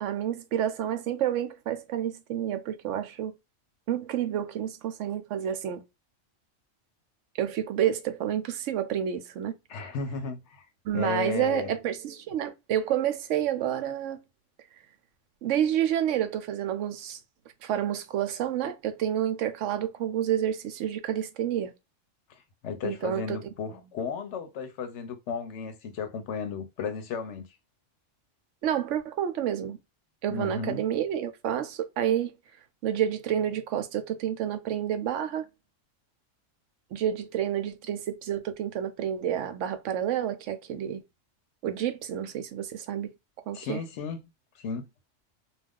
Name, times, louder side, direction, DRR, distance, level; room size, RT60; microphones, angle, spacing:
voice 1, 0.0-3.3 3.9-5.8 7.4-9.5 10.8-14.2 15.4-17.2 17.6-21.7 22.8-23.4 28.6-29.8 30.2-32.3 32.8-35.5 36.9-41.0 41.6-43.1 43.5-43.8, right 10 dB, 75° right, 0.9 m, -29 dB
voice 2, 9.7-10.7 10.9-11.7 22.3-27.5 30.3-30.9 43.5-44.3 44.5-44.9, left 5 dB, 70° left, 0.9 m, -34 dB
2.4 x 2.3 x 3.4 m
omnidirectional pair, 1.3 m